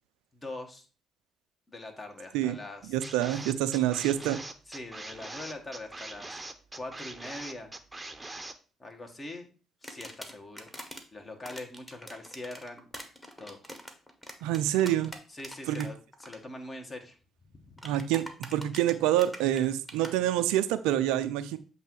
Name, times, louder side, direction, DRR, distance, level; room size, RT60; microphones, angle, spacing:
voice 1, 0.3-0.8 1.7-3.0 4.7-6.3 6.7-7.7 8.8-9.5 9.8-10.7 11.1-12.9 13.4-13.6 15.3-17.2 17.5-17.9, left 2 dB, 35° left, 4 dB, 1.5 m, -43 dB
voice 2, 2.9-4.4 14.4-15.1 15.7-15.9 17.8-18.2 18.5-21.6, right 12 dB, 80° right, 11 dB, 0.4 m, -27 dB
sound 1, 3.0-8.5, right 2 dB, 20° right, 0.7 m, -42 dB
sound 2, 9.8-11.0 11.4-15.9 16.1-16.4 17.8-20.1, equal, 5° left, 1.3 m, -44 dB
7.6 x 2.7 x 4.7 m, 0.37 s
hypercardioid pair, 50°, 0 cm